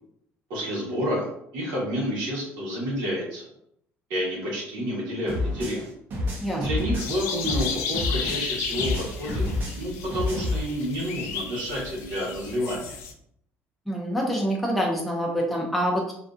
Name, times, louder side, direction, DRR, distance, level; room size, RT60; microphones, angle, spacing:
voice 1, 0.5-3.5 4.1-5.9 6.5-12.9, equal, 90° right, -5 dB, 1.0 m, -29 dB
sound 1, 5.3-8.5 8.8-10.6, left 2 dB, 45° right, 0.7 m, -29 dB
sound 2, 7.0-13.1, left 6 dB, 85° left, 0.4 m, -33 dB
voice 2, 13.9-16.1, equal, ahead, -2 dB, 0.4 m, -26 dB
2.6 x 2.4 x 2.3 m, 0.72 s
cardioid pair, 135°, 5 cm